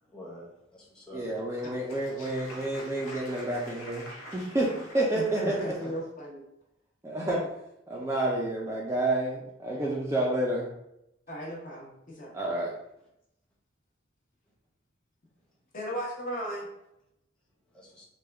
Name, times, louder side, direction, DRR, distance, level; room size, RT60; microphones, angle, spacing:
voice 1, 0.0-1.3 5.4-5.9 17.7-18.0, equal, 5° left, -6 dB, 0.8 m, -45 dB
voice 2, 1.1-4.0 4.3-5.6 7.0-7.4 7.9-10.7 12.3-12.7, right 1 dB, 15° right, -4 dB, 0.3 m, -29 dB
Applause, 1.2-6.0, equal, 85° left, 0.8 m, -46 dB
voice 3, 5.1-6.4 11.3-12.3 15.7-16.7, equal, 40° left, -2 dB, 0.8 m, -36 dB
3.4 x 2.2 x 3.3 m, 0.83 s
head